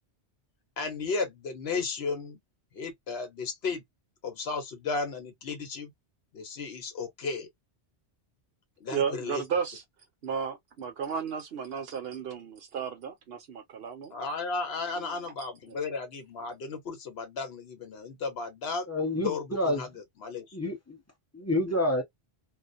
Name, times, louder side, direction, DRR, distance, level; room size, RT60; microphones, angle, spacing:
voice 1, 0.8-2.4 2.7-3.8 4.2-5.9 6.3-7.5 8.8-9.5 14.1-20.4, left 4 dB, 70° left, 1.0 m, -34 dB
voice 2, 8.9-9.8 10.2-14.1 14.9-15.2 15.7-15.9, right 7 dB, 70° right, 0.9 m, -34 dB
voice 3, 18.9-19.8 20.5-21.0 21.3-22.0, left 1 dB, 20° left, 0.6 m, -28 dB
2.4 x 2.1 x 2.5 m
omnidirectional pair, 1.1 m